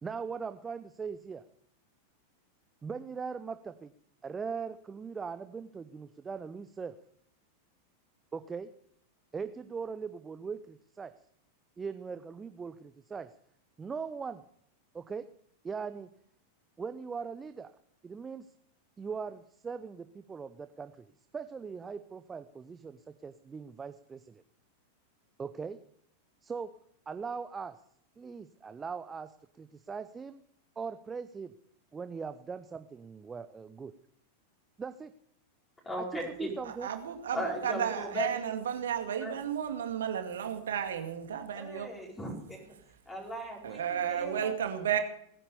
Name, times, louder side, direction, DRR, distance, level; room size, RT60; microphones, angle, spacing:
voice 1, 0.0-1.4 2.8-3.9 4.2-6.9 8.3-8.7 9.3-11.1 11.8-13.3 13.8-14.4 14.9-15.2 15.6-16.1 16.8-17.7 18.0-18.5 19.0-24.4 25.4-25.8 26.4-26.7 27.1-27.8 28.2-30.4 30.8-31.5 31.9-33.9 34.8-35.1 36.1-36.9, right 5 dB, 15° right, 11 dB, 0.7 m, -40 dB
voice 2, 35.8-36.5 37.3-38.5 39.2-39.4 41.5-42.6 43.0-44.5, equal, 15° left, -2 dB, 5.0 m, -38 dB
voice 3, 36.7-37.4 37.6-41.9 43.6-45.0, right 9 dB, 65° right, 6 dB, 2.4 m, -33 dB
19.5 x 10.0 x 7.0 m, 0.69 s
figure-of-eight pair, 90°, 0 cm